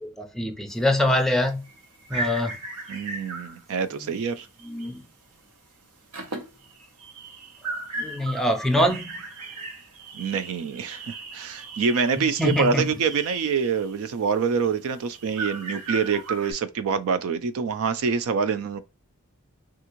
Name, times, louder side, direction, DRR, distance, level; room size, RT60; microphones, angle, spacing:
voice 1, 0.0-1.7 2.1-2.6 4.0-4.1 4.6-5.1 8.0-9.2 12.4-12.9, left 1 dB, ahead, 0.5 m, -24 dB
sound 1, 0.7-5.1 5.3-5.6 5.9-16.5, right 2 dB, 85° right, 0.8 m, -37 dB
voice 2, 2.9-4.5 10.1-18.8, right 5 dB, 65° right, 0.4 m, -26 dB
3.5 x 2.4 x 2.9 m
head